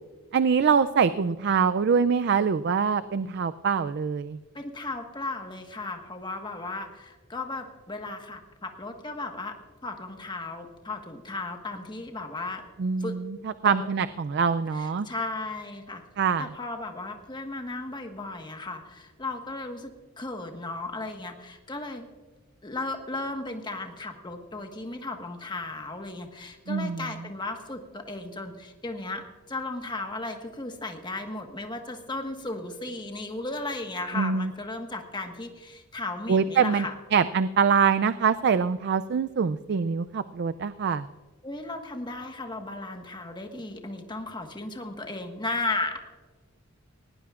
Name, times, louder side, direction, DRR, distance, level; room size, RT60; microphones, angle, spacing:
voice 1, 0.3-4.4 12.8-15.1 16.2-16.5 26.7-27.1 34.1-34.5 36.3-36.9 37.1-41.1, right 6 dB, 50° right, 12 dB, 0.4 m, -24 dB
voice 2, 4.5-12.6 13.0-13.2 13.6-13.9 14.7-16.0 16.4-22.1 22.6-36.9 41.4-46.0, left 2 dB, 20° left, 4 dB, 1.4 m, -35 dB
19.5 x 18.0 x 2.5 m, 1.4 s
head